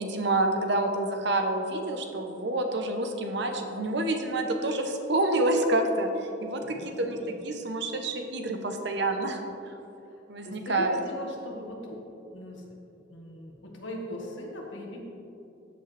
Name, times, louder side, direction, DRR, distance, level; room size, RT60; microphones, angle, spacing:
voice 1, 0.0-6.1 6.4-7.2 7.4-9.4 10.3-10.9, right 2 dB, 60° right, 4 dB, 1.0 m, -28 dB
voice 2, 6.6-7.4 10.0-12.0 12.3-12.8 13.1-15.0, left 1 dB, 75° left, -1 dB, 1.8 m, -40 dB
13.5 x 7.7 x 3.4 m, 2.8 s
head